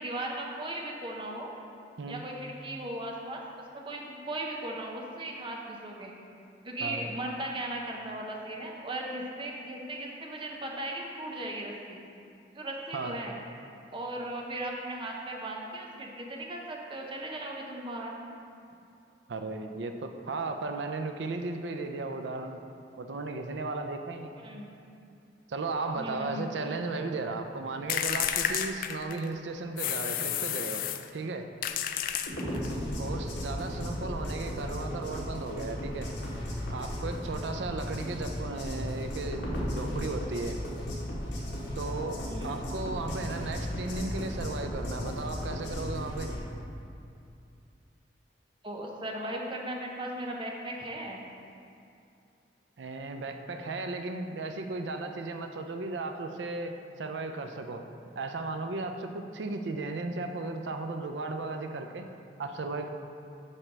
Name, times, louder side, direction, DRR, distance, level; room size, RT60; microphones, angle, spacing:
voice 1, 0.0-1.5 2.1-3.4 3.7-6.1 6.6-12.0 12.5-13.4 13.9-18.1 24.4-24.7 26.0-26.5 42.2-42.5 48.6-51.2, right 1 dB, 30° right, 0 dB, 0.8 m, -37 dB
voice 2, 19.3-22.6 23.0-24.3 25.5-30.9 31.1-31.5 33.0-36.1 36.7-40.6 41.8-46.3 52.8-57.8 58.2-62.1 62.4-62.9, right 3 dB, 85° right, 6 dB, 0.5 m, -35 dB
sound 1, 27.9-29.3 29.8-31.1 31.6-32.7, left 9 dB, 50° left, 0.3 m, -31 dB
sound 2, 32.3-46.4, equal, 80° left, 1.5 m, -35 dB
8.5 x 3.3 x 6.0 m, 2.6 s
head